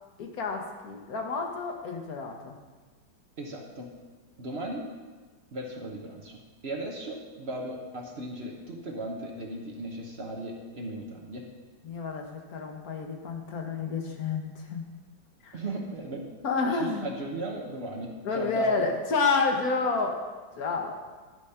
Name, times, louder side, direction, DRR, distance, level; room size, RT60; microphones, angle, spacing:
voice 1, 0.2-2.5 11.8-14.9 15.4-15.5 16.4-17.1 18.2-20.2 20.6-20.9, left 4 dB, 55° left, 2 dB, 1.5 m, -29 dB
voice 2, 3.4-3.9 4.4-4.9 5.5-11.5 15.5-16.3 16.7-18.8, right 1 dB, 45° right, 1 dB, 0.9 m, -37 dB
11.0 x 5.1 x 5.6 m, 1.3 s
omnidirectional pair, 2.0 m